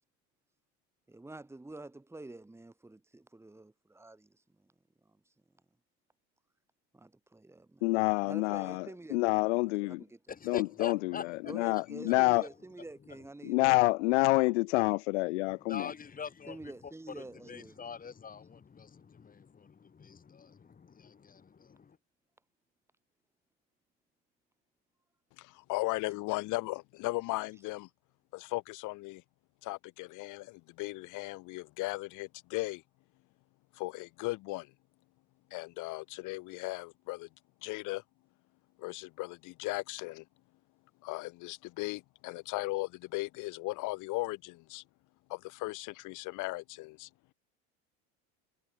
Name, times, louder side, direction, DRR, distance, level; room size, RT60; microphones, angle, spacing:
voice 1, 1.1-4.7 5.1-5.2 6.9-10.2 11.5-13.8 16.5-17.9, right 2 dB, 5° right, 3.8 m, -48 dB
voice 2, 7.8-8.8 9.1-10.0 10.5-11.0 11.5-12.4 13.4-15.8, left 23 dB, 80° left, 0.9 m, -27 dB
voice 3, 10.3-12.5 13.1-13.2 15.5-22.0, left 6 dB, 25° left, 6.0 m, -45 dB
voice 4, 25.4-27.9 28.3-29.2 29.6-32.8 33.7-34.7 35.5-37.3 37.6-38.0 38.8-40.3 41.0-44.8 45.3-47.1, left 22 dB, 60° left, 3.7 m, -37 dB
supercardioid pair, 115°, 34 cm